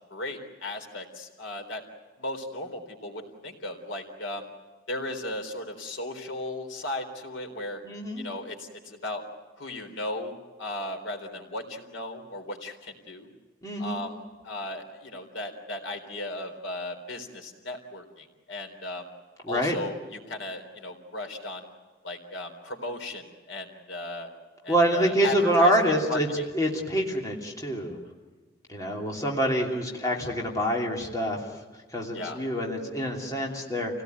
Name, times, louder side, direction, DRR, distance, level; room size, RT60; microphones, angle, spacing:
voice 1, 0.1-1.8 2.2-4.5 4.9-7.8 8.2-9.2 9.6-10.3 10.6-13.3 13.8-14.2 14.4-19.1 19.5-21.6 22.0-24.3 24.6-25.7 26.1-26.4 32.1-32.4, left 1 dB, 80° left, 5 dB, 3.8 m, -36 dB
voice 2, 7.8-8.3 13.6-14.0 19.4-19.8 24.7-26.3 26.5-28.0 28.7-31.4 31.9-34.0, equal, 20° left, -1 dB, 3.0 m, -26 dB
28.5 x 17.5 x 9.4 m, 1.4 s
head